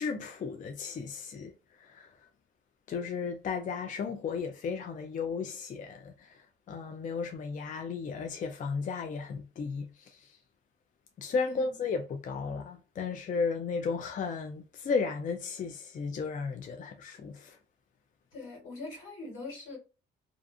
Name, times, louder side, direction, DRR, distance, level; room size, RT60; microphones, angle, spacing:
voice 1, 0.0-1.5 1.8-2.1 2.9-10.4 11.2-17.6, left 5 dB, 40° left, 0.4 m, -34 dB
voice 2, 11.4-11.7 18.3-19.8, left 3 dB, 80° left, 1.5 m, -42 dB
2.5 x 2.4 x 2.5 m
cardioid pair, 90°, 20 cm